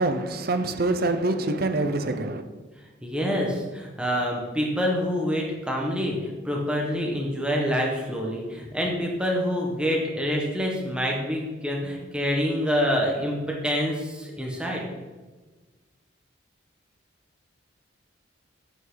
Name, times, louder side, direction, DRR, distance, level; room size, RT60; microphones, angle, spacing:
voice 1, 0.0-2.4, right 2 dB, 50° right, 9 dB, 0.6 m, -25 dB
voice 2, 3.0-14.9, equal, 5° right, -1 dB, 1.4 m, -26 dB
8.4 x 7.6 x 3.9 m, 1.3 s
head